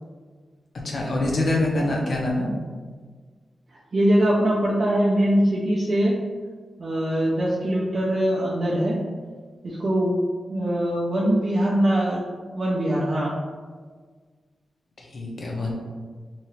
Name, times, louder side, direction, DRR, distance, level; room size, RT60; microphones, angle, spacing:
voice 1, 0.8-2.5 15.0-15.7, left 1 dB, 45° left, -2 dB, 0.6 m, -25 dB
voice 2, 3.9-6.2 6.8-9.0 9.6-10.2 10.5-12.2 12.5-13.3, right 1 dB, 40° right, -6 dB, 0.4 m, -22 dB
2.8 x 2.3 x 3.0 m, 1.5 s
wide cardioid pair, 170°, 0 cm